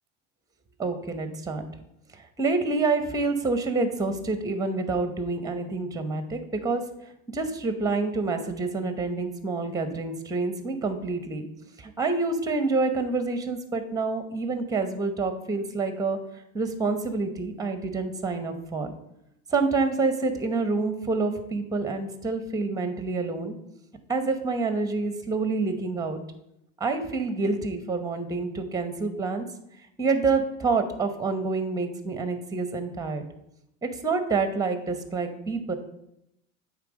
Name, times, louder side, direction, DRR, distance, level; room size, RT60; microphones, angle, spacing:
voice 1, 0.8-1.6 2.4-6.9 7.3-11.5 11.8-16.2 16.5-18.9 19.5-23.5 24.1-26.2 26.8-29.4 30.0-33.2 33.8-35.7, right 3 dB, 10° right, 8 dB, 0.9 m, -27 dB
8.2 x 3.5 x 5.1 m, 0.81 s
hypercardioid pair, 80°, 41 cm